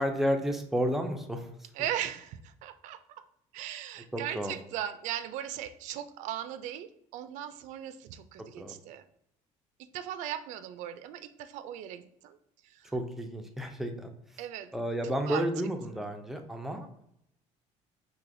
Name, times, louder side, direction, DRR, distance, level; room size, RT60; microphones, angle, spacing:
voice 1, 0.0-1.5 4.1-4.6 8.6-8.7 12.9-14.1 14.7-17.0, equal, ahead, 4 dB, 0.4 m, -31 dB
voice 2, 1.8-3.2 3.5-9.0 9.8-12.4 12.6-12.9 14.4-14.7 15.0-15.4, right 11 dB, 75° right, 12 dB, 0.4 m, -38 dB
4.8 x 2.9 x 2.5 m, 0.76 s
cardioid pair, 165°, 13 cm